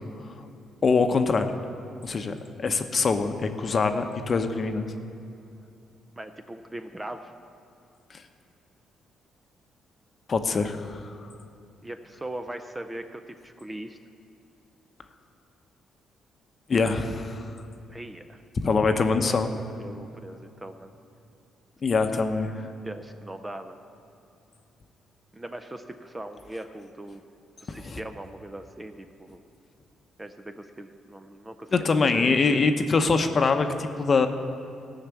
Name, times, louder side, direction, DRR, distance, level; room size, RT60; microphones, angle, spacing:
voice 1, 0.8-1.5 2.0-4.9 8.1-8.2 10.3-11.2 16.7-17.5 18.6-19.5 21.8-22.5 27.7-28.0 31.7-34.3, left 4 dB, 40° left, 7 dB, 0.8 m, -24 dB
voice 2, 6.2-7.3 11.8-14.0 17.9-18.4 19.2-20.9 22.8-23.8 25.3-27.2 27.6-29.4 30.2-32.7, right 1 dB, 15° right, 7 dB, 0.6 m, -40 dB
15.5 x 5.8 x 8.3 m, 2.7 s
cardioid pair, 90°, 0 cm